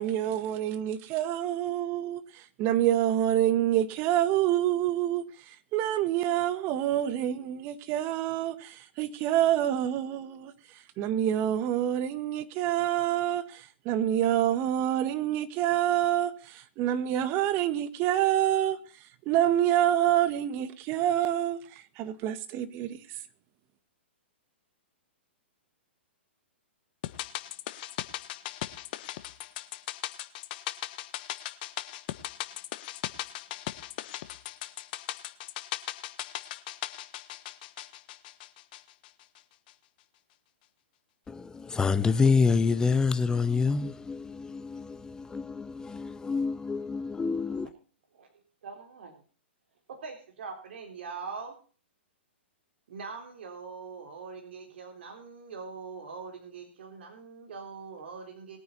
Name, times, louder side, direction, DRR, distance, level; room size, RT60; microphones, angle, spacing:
voice 1, 0.0-5.2 5.7-10.5 11.0-18.8 19.2-21.6 22.0-23.0, right 12 dB, 35° right, 1.6 m, -27 dB
sound 1, 27.0-39.4 39.7-39.8, left 15 dB, 45° left, 1.3 m, -38 dB
voice 2, 41.3-47.7, left 5 dB, 10° left, 0.8 m, -27 dB
voice 3, 48.1-49.2 49.9-51.6 52.9-58.6, right 5 dB, 65° right, 3.7 m, -42 dB
21.5 x 9.1 x 4.2 m
hypercardioid pair, 125°, 6 cm